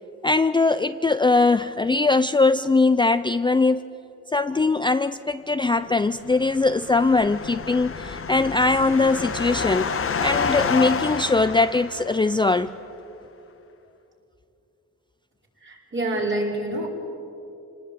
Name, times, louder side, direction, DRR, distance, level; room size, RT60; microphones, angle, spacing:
voice 1, 0.2-3.8 4.3-9.9 10.2-12.7, left 3 dB, 15° left, 12 dB, 0.4 m, -21 dB
sound 1, 6.2-12.5, left 5 dB, 45° left, 1.3 m, -29 dB
voice 2, 15.6-16.9, right 1 dB, 40° right, -1 dB, 4.9 m, -27 dB
27.0 x 19.0 x 8.6 m, 2.9 s
wide cardioid pair, 115°, 29 cm